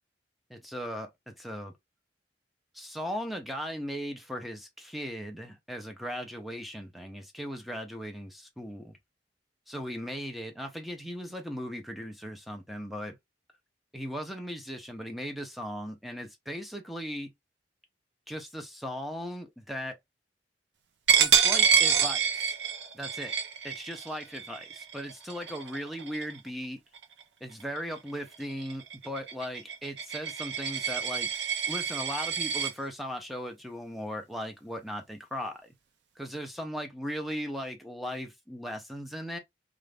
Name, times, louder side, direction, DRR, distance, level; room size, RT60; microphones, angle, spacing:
voice 1, 0.5-1.7 2.7-9.0 9.7-13.2 13.9-17.3 18.3-20.0 21.2-22.5 22.9-23.3 23.6-26.8 27.4-31.3 31.7-35.6 36.2-39.4, equal, ahead, 0.6 m, -38 dB
Coin (dropping), 21.1-26.5 26.9-27.2 27.6-32.7, right 7 dB, 75° right, 0.6 m, -27 dB
2.5 x 2.4 x 3.3 m
head